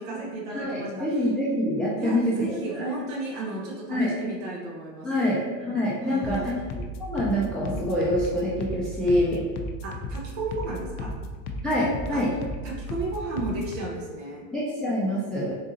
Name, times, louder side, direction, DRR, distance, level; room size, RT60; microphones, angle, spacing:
voice 1, 0.0-1.0 2.0-5.5 6.0-6.5 9.8-11.1 12.1-12.2 12.6-14.5, right 2 dB, 65° right, -2 dB, 1.2 m, -33 dB
voice 2, 0.5-2.2 2.5-2.9 3.9-4.1 5.0-5.4 5.6-6.6 7.0-9.4 11.6-12.3 14.5-15.5, left 1 dB, ahead, -7 dB, 0.6 m, -26 dB
sound 1, 6.2-13.8, left 1 dB, 50° left, 0.6 m, -35 dB
3.8 x 2.7 x 3.9 m, 1.4 s
supercardioid pair, 120°, 39 cm